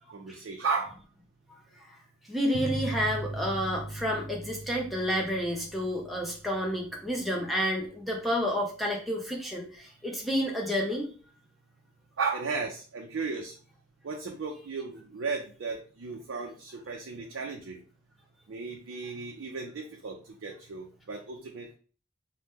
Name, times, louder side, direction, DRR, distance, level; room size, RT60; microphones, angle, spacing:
voice 1, 0.1-0.9 12.2-13.5 14.0-17.8 18.5-21.8, right 4 dB, 65° right, 1 dB, 0.4 m, -35 dB
voice 2, 2.3-11.1, equal, ahead, -1 dB, 0.5 m, -30 dB
sound 1, 2.5-7.7, right 2 dB, 85° left, 0.7 m, -39 dB
2.8 x 2.1 x 3.4 m, 0.39 s
head